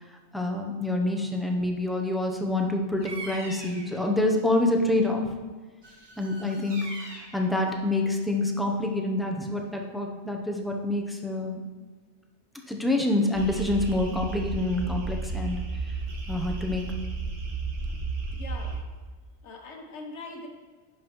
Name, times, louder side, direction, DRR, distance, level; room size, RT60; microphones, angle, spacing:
voice 1, 0.3-5.3 6.2-6.8 7.3-11.6 12.7-15.6 16.3-16.9, left 2 dB, ahead, 1 dB, 0.4 m, -27 dB
Bird vocalization bird call bird song, 3.0-4.0 5.8-7.4, right 2 dB, 20° right, 1.2 m, -41 dB
sound 1, 13.3-18.8, right 3 dB, 65° right, 1.3 m, -33 dB
voice 2, 18.3-18.8 19.4-20.5, left 3 dB, 70° left, 2 dB, 1.3 m, -41 dB
10.5 x 5.4 x 3.0 m, 1.4 s
omnidirectional pair, 1.2 m